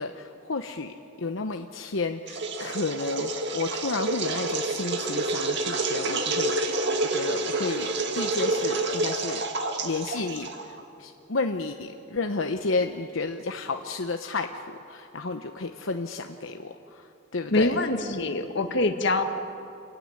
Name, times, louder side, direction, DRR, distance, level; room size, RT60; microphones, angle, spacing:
voice 1, 0.0-9.4 9.8-17.8, left 3 dB, 85° left, 5 dB, 0.9 m, -32 dB
sound 1, 2.3-10.8, right 2 dB, 60° right, 2.0 m, -28 dB
voice 2, 17.5-19.2, left 2 dB, 65° left, 6 dB, 1.7 m, -24 dB
28.5 x 15.0 x 9.7 m, 2.7 s
head